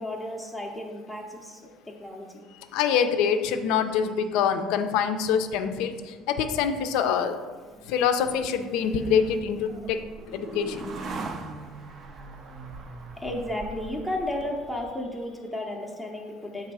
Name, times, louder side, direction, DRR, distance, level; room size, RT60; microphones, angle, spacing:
voice 1, 0.0-1.6 1.8-2.4 13.2-16.7, left 1 dB, 5° left, -1 dB, 0.6 m, -33 dB
voice 2, 2.7-7.4 7.9-10.0 10.3-10.9, left 7 dB, 75° left, 8 dB, 0.5 m, -25 dB
sound 1, 7.7-15.1, right 3 dB, 35° right, 0.5 m, -41 dB
6.6 x 3.4 x 4.7 m, 1.4 s
cardioid pair, 160°, 0 cm